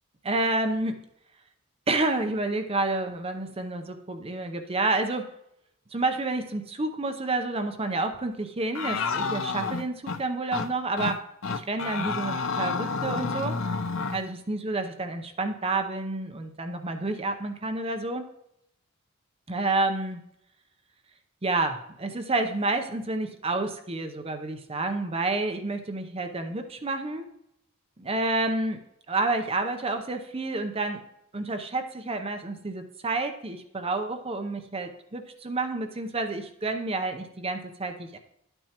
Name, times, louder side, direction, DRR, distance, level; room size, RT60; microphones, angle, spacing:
voice 1, 0.2-1.1 1.9-5.3 5.9-11.2 11.5-13.6 14.1-18.2 19.5-20.2 21.4-27.3 28.0-28.8 29.1-31.0 31.3-38.2, right 2 dB, 25° right, 6 dB, 0.7 m, -29 dB
sound 1, 8.7-10.2 10.5-10.7 11.0-11.2 11.4-14.2, left 4 dB, 60° left, 0.6 m, -30 dB
11.5 x 8.9 x 2.9 m, 0.79 s
head